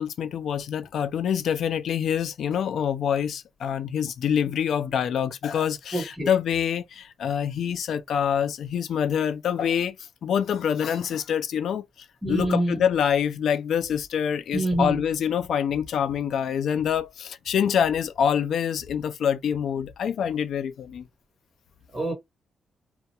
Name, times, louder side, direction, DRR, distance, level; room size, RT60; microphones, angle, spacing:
voice 1, 0.0-10.0 10.2-11.8 12.3-21.0, left 8 dB, 70° left, 0.4 m, -26 dB
voice 2, 5.9-6.3 12.2-12.8 14.5-15.0 21.9-22.1, right 1 dB, 15° right, 1.1 m, -26 dB
2.2 x 2.0 x 2.8 m
cardioid pair, 125°, 0 cm